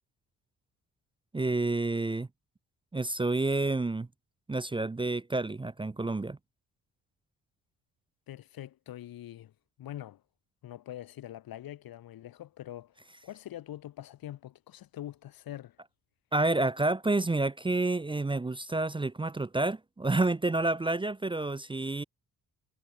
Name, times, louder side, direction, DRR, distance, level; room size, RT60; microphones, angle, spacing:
voice 1, 1.3-2.3 2.9-4.1 4.5-6.4 16.3-22.0, right 2 dB, 15° right, 0.7 m, -29 dB
voice 2, 8.3-9.5 9.8-10.2 10.6-12.9 13.2-15.8, left 12 dB, 75° left, 2.6 m, -44 dB
cardioid pair, 80°, 36 cm